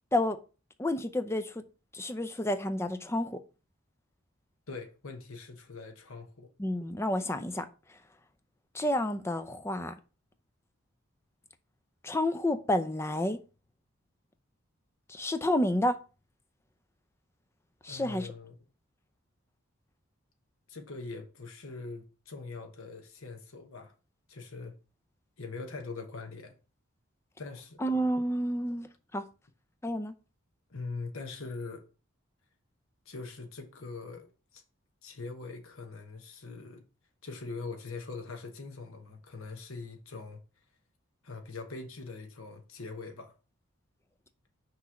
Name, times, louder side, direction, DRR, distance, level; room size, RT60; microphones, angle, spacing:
voice 1, 0.8-1.6 1.9-3.4 6.6-7.7 8.7-9.9 12.0-13.4 15.1-16.0 17.8-18.3 27.8-28.9 29.1-29.2 29.8-30.1, left 1 dB, 10° left, 0.5 m, -30 dB
voice 2, 4.7-6.5 17.9-18.6 20.7-23.9 24.3-24.7 25.4-26.6 27.4-27.8 30.7-31.8 33.0-34.6 35.0-36.8 37.2-40.4 41.2-43.3, left 3 dB, 75° left, 1.0 m, -42 dB
6.1 x 3.1 x 5.7 m
head